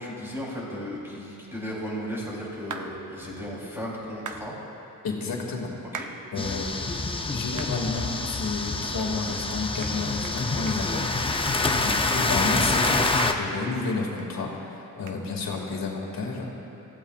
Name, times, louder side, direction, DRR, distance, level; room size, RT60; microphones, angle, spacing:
voice 1, 0.0-4.6 5.9-6.0 11.5-11.8, equal, 5° right, -6 dB, 3.5 m, -35 dB
sound 1, 2.7-2.9 4.3-4.4 5.9-6.1 6.7-6.8 7.6-7.7 8.2-8.3 9.0-9.1 9.4-9.5 9.8-10.0 10.2-10.4 10.7-11.1 11.5-11.6 11.9-14.3 14.5-14.6 15.1-15.2, right 5 dB, 60° right, 0.9 m, -39 dB
voice 2, 5.0-5.8 6.3-6.7 7.3-11.1 11.8-16.5, left 3 dB, 85° left, -1 dB, 2.4 m, -31 dB
sound 2, 6.4-13.3, left 3 dB, 15° left, 0.6 m, -26 dB
27.5 x 15.5 x 2.5 m, 2.9 s
wide cardioid pair, 175°, 34 cm